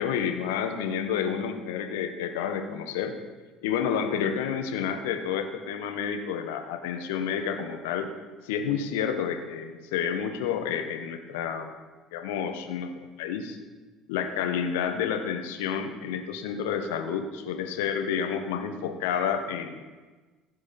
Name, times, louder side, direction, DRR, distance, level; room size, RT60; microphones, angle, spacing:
voice 1, 0.0-3.1 3.6-8.1 8.4-11.7 12.1-12.9 13.2-13.6 14.1-19.8, left 7 dB, 70° left, 6 dB, 1.2 m, -30 dB
16.5 x 7.6 x 4.2 m, 1.3 s
figure-of-eight pair, 60°, 0 cm